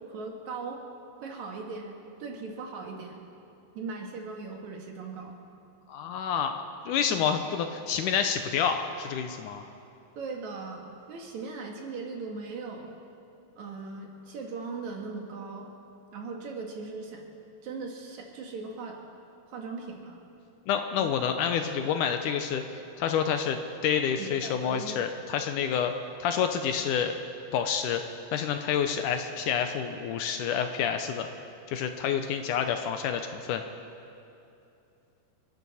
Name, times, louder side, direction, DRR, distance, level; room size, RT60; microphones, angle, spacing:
voice 1, 0.1-0.8 1.2-3.2 3.8-5.4 7.1-7.3 10.2-12.9 13.6-15.7 16.1-17.2 17.6-19.0 19.5-20.2 21.0-21.1 24.2-25.0, right 4 dB, 60° right, 1 dB, 2.6 m, -39 dB
voice 2, 5.9-9.6 20.7-25.9 26.2-27.2 27.5-28.0 28.3-31.3 31.7-33.6, left 7 dB, 75° left, 7 dB, 2.0 m, -28 dB
29.0 x 12.0 x 4.2 m, 2.7 s
omnidirectional pair, 4.0 m